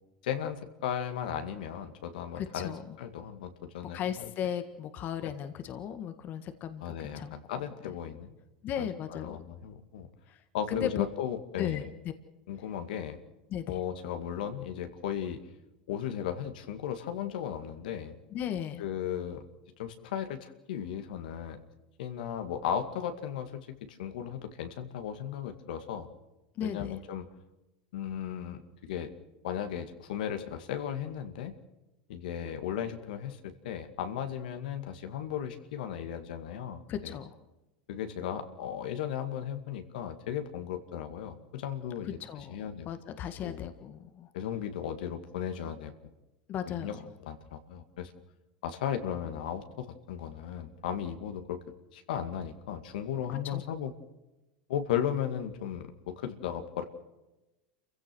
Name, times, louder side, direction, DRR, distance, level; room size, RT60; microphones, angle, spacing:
voice 1, 0.2-4.3 6.8-8.3 8.8-10.1 10.5-11.9 12.5-13.2 13.7-15.4 15.9-18.2 18.8-19.4 19.8-21.6 22.0-26.1 26.6-27.3 27.9-29.1 29.4-31.5 32.1-37.2 37.9-42.9 43.4-43.6 44.3-45.9 46.7-46.9 47.2-48.1 48.6-51.6 51.9-53.9 54.7-56.8, left 9 dB, 75° left, 7 dB, 2.2 m, -36 dB
voice 2, 2.3-2.8 3.9-7.3 8.6-9.4 10.3-10.4 10.7-11.0 11.6-11.8 13.5-13.8 18.3-18.8 26.6-26.9 36.9-37.3 42.2-42.5 42.8-44.3 46.5-47.0 53.3-53.6, left 9 dB, 40° left, 9 dB, 1.7 m, -36 dB
28.0 x 16.0 x 6.3 m, 1.0 s
hypercardioid pair, 105°, 5 cm